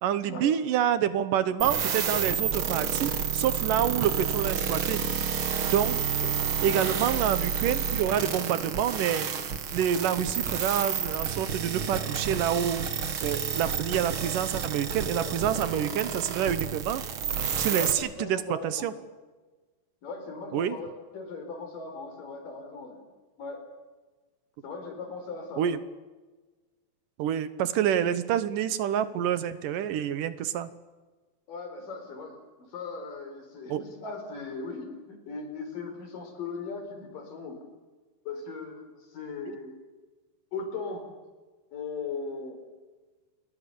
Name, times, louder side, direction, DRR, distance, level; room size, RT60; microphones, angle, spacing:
voice 1, 0.0-5.0 5.7-6.0 6.6-9.3 9.7-12.9 13.2-17.0 17.6-18.9 20.5-20.8 25.6-25.8 27.2-30.7 33.7-33.9, right 10 dB, 75° right, 13 dB, 2.7 m, -27 dB
sound 1, 1.6-17.9, right 7 dB, 50° right, 1.9 m, -30 dB
voice 2, 6.2-6.9 15.2-15.3 15.5-15.8 17.7-18.9 20.0-23.0 23.4-23.6 24.6-25.7 31.5-37.6 38.3-39.7 40.5-41.1 41.7-42.6, left 4 dB, 70° left, 5 dB, 5.9 m, -38 dB
28.0 x 21.5 x 7.0 m, 1.3 s
omnidirectional pair, 4.0 m